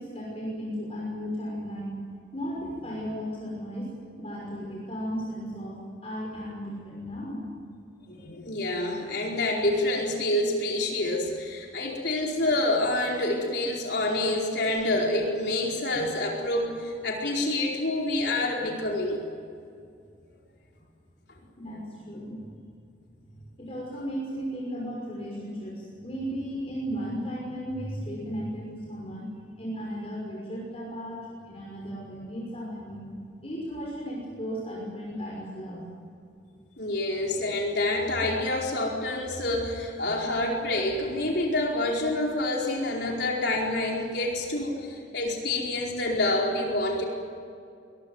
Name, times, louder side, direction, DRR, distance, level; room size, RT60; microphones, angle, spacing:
voice 1, 0.0-1.9 2.3-7.5 21.6-22.4 23.3-29.3 29.6-33.1 33.4-35.8, equal, 30° left, -3 dB, 5.9 m, -35 dB
voice 2, 8.1-19.2 36.8-47.0, left 2 dB, 55° left, -1 dB, 4.6 m, -27 dB
23.5 x 22.5 x 8.1 m, 2.4 s
head